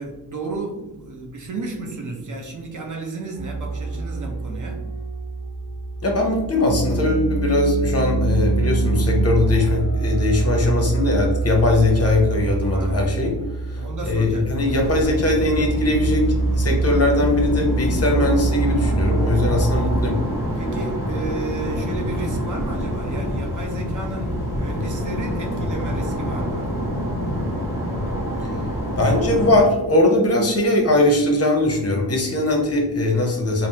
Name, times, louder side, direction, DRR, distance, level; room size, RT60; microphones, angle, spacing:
voice 1, 0.0-4.9 12.7-13.2 13.7-15.2 20.6-26.8, right 3 dB, 45° right, 2 dB, 0.6 m, -33 dB
sound 1, 3.3-20.1, right 3 dB, 70° right, 0.9 m, -25 dB
voice 2, 6.0-13.3 13.6-20.2 28.4-28.5 29.0-33.7, left 2 dB, 35° left, 1 dB, 0.7 m, -20 dB
sound 2, 14.6-29.6, equal, 5° right, 1.3 m, -27 dB
3.2 x 2.0 x 2.7 m, 0.99 s
cardioid pair, 80°, 42 cm